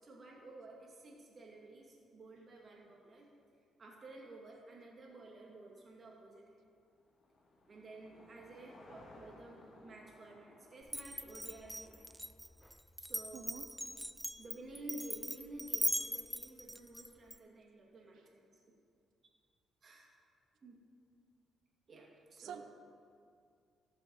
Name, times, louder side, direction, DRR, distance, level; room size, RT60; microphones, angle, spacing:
voice 1, 0.0-3.3 3.8-6.4 7.7-12.2 13.0-13.4 14.4-18.5 19.8-20.1 20.6-20.8 21.9-22.6, right 2 dB, 40° right, -2 dB, 2.4 m, -52 dB
Car passing by / Engine, 6.3-12.8, left 2 dB, 55° left, 1.6 m, -60 dB
Glass, 10.9-17.4, equal, ahead, 0.3 m, -40 dB
voice 2, 13.3-13.7 22.4-22.6, right 8 dB, 75° right, 8 dB, 0.6 m, -47 dB
15.5 x 6.8 x 4.1 m, 2.3 s
cardioid pair, 90°, 0 cm